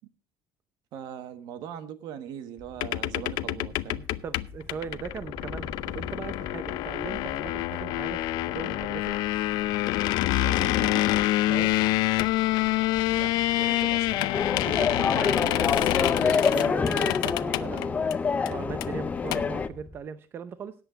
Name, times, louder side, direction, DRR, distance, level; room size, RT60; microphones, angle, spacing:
voice 1, 0.9-4.1 10.3-11.1 13.1-15.1, right 9 dB, 65° right, 11 dB, 1.4 m, -40 dB
sound 1, 2.6-20.0, left 2 dB, 5° left, 2.2 m, -47 dB
sound 2, 2.8-18.1 18.5-18.6 18.8-18.9 19.2-19.4, left 16 dB, 65° left, 0.6 m, -27 dB
voice 2, 4.2-9.1 11.5-11.7 15.1-20.7, right 7 dB, 30° right, 12 dB, 0.6 m, -39 dB
sound 3, 14.3-19.7, left 5 dB, 20° left, 0.6 m, -26 dB
17.5 x 8.1 x 4.0 m, 0.34 s
cardioid pair, 165°, 8 cm